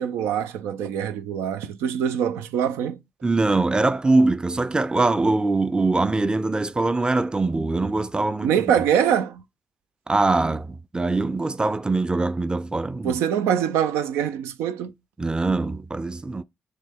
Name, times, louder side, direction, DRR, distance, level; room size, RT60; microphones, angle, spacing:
voice 1, 0.0-3.0 8.4-9.4 13.0-14.9, right 9 dB, 90° right, 0.4 m, -24 dB
voice 2, 3.2-8.8 10.1-13.2 15.2-16.4, right 3 dB, 20° right, 0.5 m, -23 dB
6.2 x 2.2 x 3.4 m
supercardioid pair, 50°, 4 cm